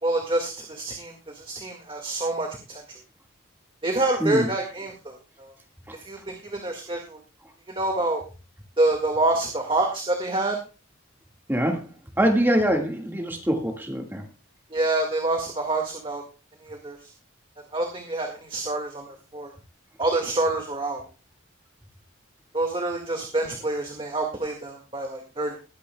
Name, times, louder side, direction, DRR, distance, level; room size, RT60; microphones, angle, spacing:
voice 1, 0.0-2.8 3.8-5.5 5.9-7.2 7.7-8.2 8.8-10.6 14.7-16.2 16.6-17.1 17.7-19.5 20.0-21.0 22.5-25.6, right 2 dB, 25° right, 3 dB, 1.8 m, -27 dB
voice 2, 5.9-6.2 11.5-14.3, equal, 10° right, 2 dB, 1.7 m, -24 dB
21.0 x 10.0 x 2.2 m, 0.32 s
head